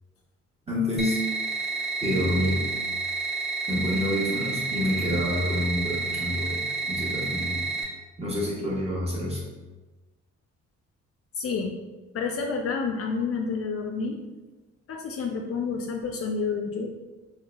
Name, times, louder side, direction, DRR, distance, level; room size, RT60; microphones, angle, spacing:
voice 1, 0.7-1.2 2.0-2.6 3.7-6.6 6.9-7.6 8.2-9.4, left 1 dB, 20° right, -5 dB, 1.2 m, -27 dB
sound 1, 1.0-7.8, right 4 dB, ahead, 1.5 m, -30 dB
voice 2, 11.3-11.7 12.1-14.2 14.9-16.9, left 5 dB, 50° left, 2 dB, 0.5 m, -29 dB
3.8 x 3.2 x 2.2 m, 1.2 s
cardioid pair, 90°, 30 cm